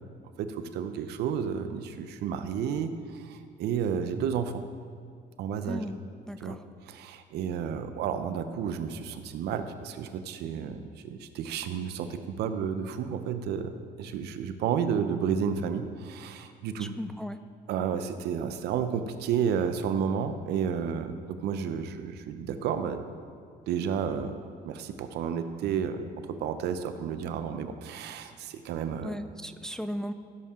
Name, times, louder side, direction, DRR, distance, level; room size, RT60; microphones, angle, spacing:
voice 1, 0.4-4.6 5.4-5.8 6.4-6.6 6.9-13.7 14.0-16.9 17.7-23.1 23.7-24.4 24.6-26.0 26.3-29.2, right 7 dB, 75° right, 9 dB, 0.7 m, -31 dB
voice 2, 5.7-6.0 6.3-6.6 16.8-17.4 29.0-30.1, equal, 5° left, 10 dB, 0.3 m, -36 dB
15.0 x 7.2 x 3.7 m, 2.2 s
cardioid pair, 110°, 17 cm